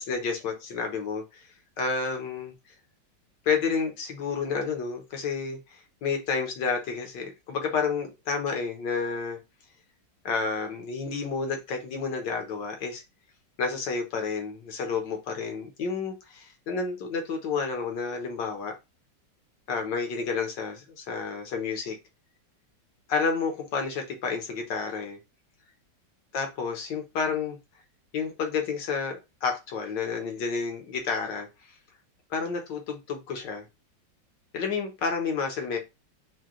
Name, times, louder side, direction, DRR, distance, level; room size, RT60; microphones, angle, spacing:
voice 1, 0.0-1.5 1.8-2.5 3.4-9.4 10.2-13.0 13.6-18.8 19.7-22.0 23.1-25.2 26.3-27.6 28.1-31.5 32.3-33.6 34.5-35.8, left 5 dB, 70° left, 1.7 m, -30 dB
4.7 x 2.3 x 3.7 m
omnidirectional pair, 2.0 m